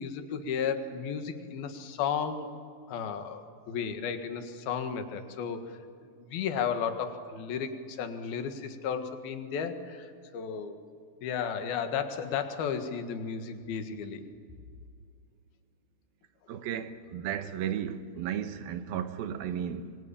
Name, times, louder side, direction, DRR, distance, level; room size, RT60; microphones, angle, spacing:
voice 1, 0.0-2.5 2.9-5.8 6.2-10.8 11.2-14.3, left 7 dB, 90° left, 3.6 m, -34 dB
voice 2, 16.5-20.0, right 9 dB, 85° right, 3.1 m, -34 dB
25.0 x 24.0 x 8.9 m
omnidirectional pair, 4.2 m